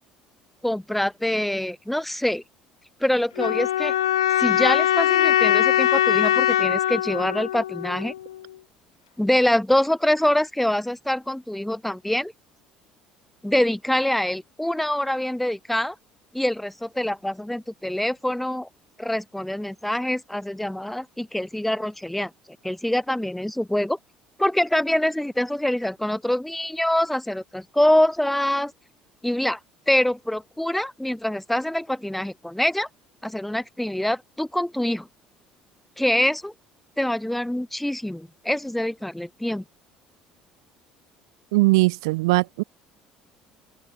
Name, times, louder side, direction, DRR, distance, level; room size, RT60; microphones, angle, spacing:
voice 1, 0.6-2.4 3.0-3.9 4.4-8.1 9.2-12.3 13.4-15.9 16.3-18.7 19.0-22.3 22.6-24.0 24.4-28.7 29.2-29.6 29.9-32.9 33.2-35.1 36.0-36.5 37.0-39.6, left 1 dB, 5° left, 1.4 m, -25 dB
sound 1, 3.4-8.4, left 12 dB, 80° left, 0.5 m, -21 dB
voice 2, 41.5-42.6, right 23 dB, 75° right, 1.2 m, -20 dB
open air
hypercardioid pair, 60°, 3 cm